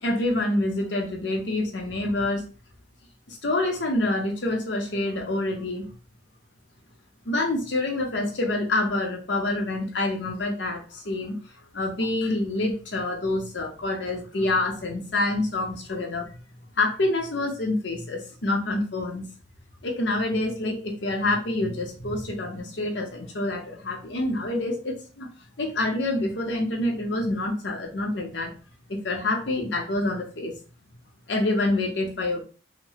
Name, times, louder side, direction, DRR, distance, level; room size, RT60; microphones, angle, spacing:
voice 1, 0.0-2.4 3.3-5.8 7.2-11.4 11.7-16.3 16.7-19.3 19.8-25.3 25.6-28.5 28.9-30.5 31.3-32.4, left 2 dB, 75° left, 1 dB, 0.8 m, -27 dB
2.9 x 2.1 x 2.8 m, 0.36 s
head